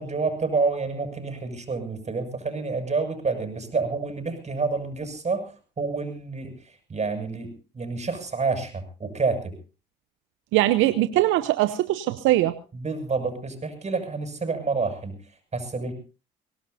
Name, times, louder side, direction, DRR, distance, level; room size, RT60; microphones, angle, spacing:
voice 1, 0.0-9.5 12.7-15.9, right 4 dB, 35° right, 7 dB, 6.7 m, -29 dB
voice 2, 10.5-12.6, right 15 dB, 80° right, 12 dB, 0.8 m, -21 dB
23.5 x 18.0 x 2.7 m, 0.33 s
supercardioid pair, 65°, 20 cm